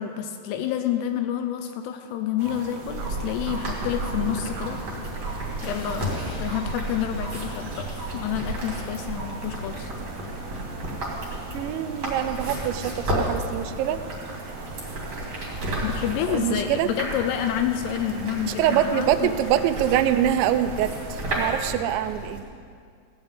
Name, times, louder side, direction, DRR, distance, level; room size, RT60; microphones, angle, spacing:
voice 1, 0.0-4.9 5.6-9.9 15.8-19.3, left 10 dB, 80° left, 7 dB, 2.6 m, -29 dB
sound 1, 2.4-21.7, right 3 dB, 60° right, 3.0 m, -40 dB
sound 2, 2.9-22.4, right 1 dB, 30° right, 3.2 m, -33 dB
sound 3, 5.6-17.6, left 1 dB, 65° left, 2.4 m, -43 dB
voice 2, 11.5-14.0 16.3-16.9 18.5-22.4, right 11 dB, 85° right, 11 dB, 2.8 m, -24 dB
16.0 x 5.8 x 9.6 m, 2.2 s
omnidirectional pair, 5.2 m